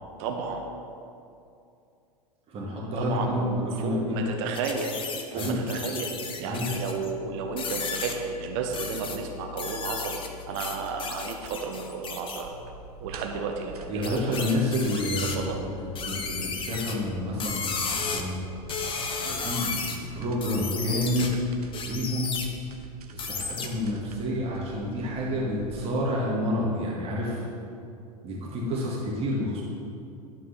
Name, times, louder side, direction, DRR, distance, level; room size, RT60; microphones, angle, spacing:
voice 1, 0.2-0.6 3.0-5.0 5.3-6.1 6.4-10.2 10.5-12.5 13.0-14.5 15.2-15.6, right 5 dB, 45° right, 3 dB, 1.0 m, -32 dB
voice 2, 2.5-4.2 5.3-5.6 6.4-6.7 13.9-15.7 16.0-17.8 18.1-18.4 19.2-21.5 21.8-22.3 23.1-27.4 28.2-29.6, left 1 dB, 30° right, -5 dB, 2.0 m, -29 dB
sound 1, 4.5-7.1 7.6-8.1 8.7-9.2 9.6-12.4 14.0-15.4 16.0-16.9 17.4-18.2 18.7-20.0 20.4-21.3 21.7-22.5 23.2-23.7, left 5 dB, 25° left, 0.9 m, -33 dB
sound 2, 12.4-25.8, right 3 dB, 70° right, 0.9 m, -45 dB
11.5 x 4.7 x 5.9 m, 2.6 s
figure-of-eight pair, 85°, 20 cm